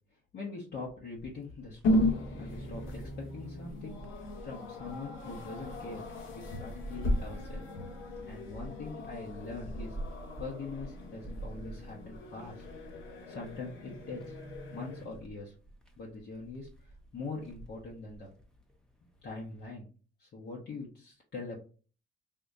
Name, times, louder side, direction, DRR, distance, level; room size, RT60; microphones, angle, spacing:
voice 1, 0.3-7.6 8.3-10.0 10.4-12.6 13.3-14.4 14.7-15.5 16.0-16.7 17.1-18.3 19.2-19.9 20.2-21.6, left 3 dB, 55° left, -4 dB, 1.0 m, -43 dB
sound 1, 1.2-19.7, right 2 dB, 5° left, 0.8 m, -49 dB
sound 2, 1.8-15.1, left 1 dB, 80° left, 1.0 m, -36 dB
3.6 x 2.7 x 2.7 m, 0.38 s
cardioid pair, 90°, 20 cm